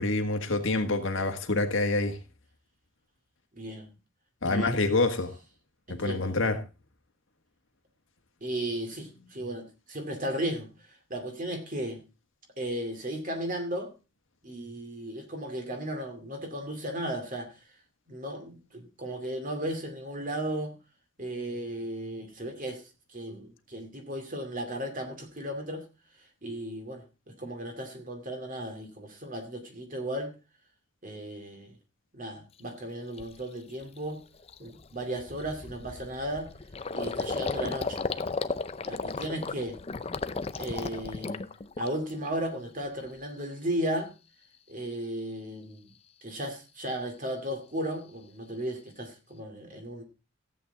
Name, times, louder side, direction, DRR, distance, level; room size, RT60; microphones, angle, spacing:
voice 1, 0.0-2.2 4.4-5.3 5.9-6.6, left 2 dB, 65° left, 1.6 m, -27 dB
voice 2, 3.5-3.9 4.4-4.8 5.9-6.4 8.4-10.7 11.1-12.0 12.6-13.9 14.4-17.5 18.1-20.7 21.2-22.8 23.1-25.8 26.4-30.3 31.0-31.7 32.1-34.2 34.6-36.5 36.9-38.0 38.9-39.8 40.6-41.5 41.8-44.1 44.7-45.9 46.2-50.0, right 1 dB, 40° right, 2.4 m, -35 dB
Gurgling, 32.6-32.7 33.2-33.4 33.8-34.0 34.2-42.3 42.6-43.3, left 3 dB, 30° left, 0.5 m, -35 dB
15.0 x 8.3 x 4.0 m
head